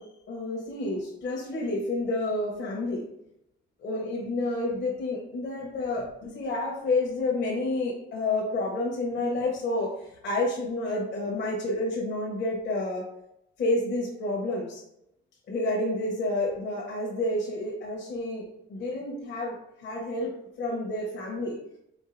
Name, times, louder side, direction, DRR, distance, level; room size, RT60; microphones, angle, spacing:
voice 1, 0.0-3.1 3.8-9.9 10.2-13.1 13.6-14.8 15.5-21.6, left 2 dB, 60° left, -2 dB, 1.0 m, -29 dB
4.5 x 2.5 x 2.6 m, 0.79 s
cardioid pair, 90°, 20 cm